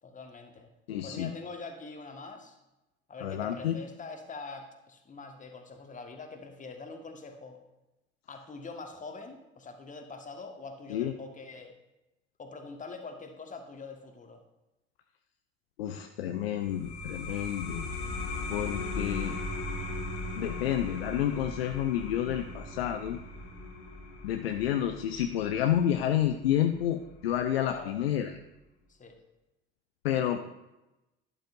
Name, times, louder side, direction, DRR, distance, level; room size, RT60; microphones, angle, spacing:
voice 1, 0.0-0.7 1.0-2.6 3.1-7.6 8.3-11.7 12.4-14.4 27.7-28.0 28.9-29.2, left 3 dB, 25° left, 5 dB, 1.5 m, -44 dB
voice 2, 0.9-1.3 3.2-3.8 10.9-11.1 15.8-17.9 18.5-19.4 20.4-23.2 24.2-28.3 30.0-30.4, left 11 dB, 75° left, 6 dB, 0.6 m, -29 dB
sound 1, 16.6-27.8, left 2 dB, 45° left, 2.1 m, -39 dB
12.0 x 11.0 x 2.6 m, 0.97 s
figure-of-eight pair, 55°, 31 cm